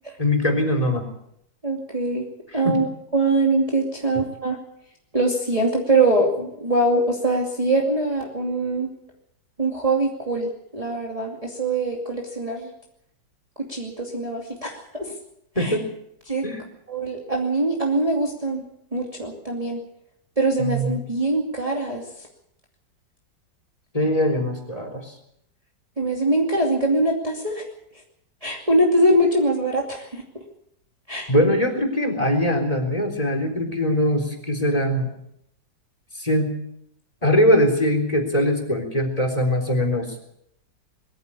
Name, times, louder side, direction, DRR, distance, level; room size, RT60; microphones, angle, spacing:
voice 1, 0.2-1.1 2.5-2.8 15.6-15.9 16.4-16.7 20.6-21.0 23.9-25.1 31.3-35.1 36.2-36.5 37.2-40.2, equal, 20° left, 4 dB, 3.8 m, -21 dB
voice 2, 1.6-2.3 2.5-2.9 3.1-4.6 5.1-8.9 9.6-12.7 13.6-15.1 15.6-15.7 16.3-16.4 16.9-18.6 18.9-19.8 20.4-22.0 26.0-27.6 28.4-30.2 31.1-31.3, right 2 dB, 20° right, -1 dB, 2.6 m, -23 dB
21.5 x 14.0 x 8.5 m, 0.76 s
omnidirectional pair, 2.0 m